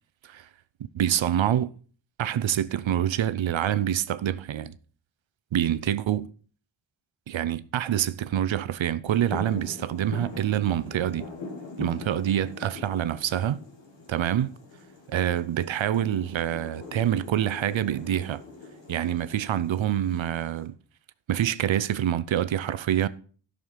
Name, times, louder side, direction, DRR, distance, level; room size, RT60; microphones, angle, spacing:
voice 1, 0.9-1.7 2.2-4.7 5.5-6.3 7.3-11.3 11.8-13.6 14.1-14.5 15.1-18.4 18.9-20.8 21.3-23.1, right 10 dB, 90° right, 0.7 m, -26 dB
sound 1, 9.0-20.7, left 3 dB, 75° left, 3.1 m, -43 dB
12.5 x 6.6 x 5.7 m
wide cardioid pair, 75°, 45 cm